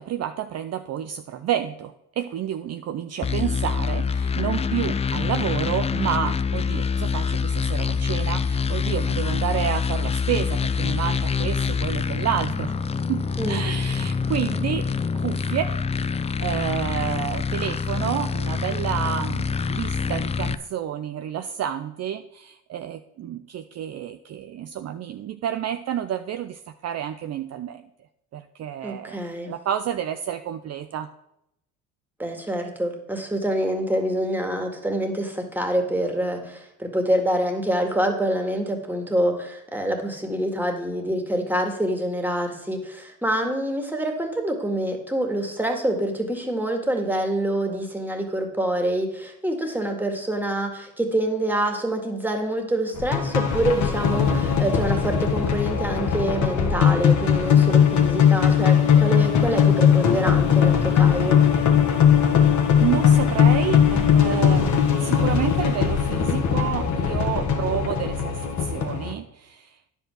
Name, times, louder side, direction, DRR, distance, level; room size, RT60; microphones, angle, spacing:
voice 1, 0.0-12.7 13.1-14.8 15.1-15.7 16.1-27.8 28.3-31.1 62.8-64.7 65.0-69.9, right 10 dB, 45° right, 9 dB, 0.5 m, -29 dB
sound 1, 3.2-20.5, left 5 dB, 20° left, 0.4 m, -25 dB
voice 2, 28.8-29.5 32.2-61.4, right 1 dB, 5° right, 3 dB, 2.1 m, -26 dB
sound 2, 53.0-69.1, left 8 dB, 50° left, 1.6 m, -19 dB
9.9 x 5.5 x 6.1 m, 0.83 s
supercardioid pair, 70°, 37 cm